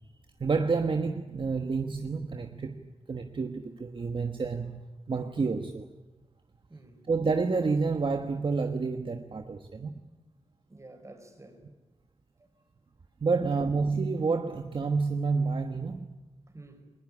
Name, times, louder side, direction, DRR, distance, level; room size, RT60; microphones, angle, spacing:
voice 1, 0.4-2.8 3.1-5.9 7.1-10.1 13.2-16.1, right 4 dB, 50° right, 1.4 m, -29 dB
voice 2, 6.7-7.1 10.7-11.6 13.3-13.8 16.5-16.9, right 2 dB, 25° right, 4.8 m, -50 dB
21.0 x 20.5 x 10.0 m
wide cardioid pair, 120°, 11 cm